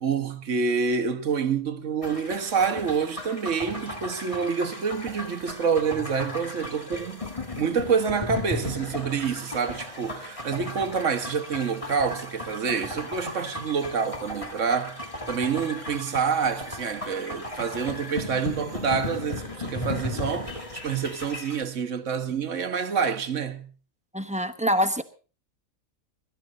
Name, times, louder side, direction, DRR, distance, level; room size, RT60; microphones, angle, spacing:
voice 1, 0.0-7.3 7.6-23.7, right 6 dB, 65° right, 1.5 m, -27 dB
sound 1, 2.0-21.6, left 2 dB, 25° left, 2.1 m, -36 dB
voice 2, 24.1-25.0, equal, 5° right, 0.9 m, -25 dB
23.5 x 12.5 x 4.0 m
omnidirectional pair, 1.4 m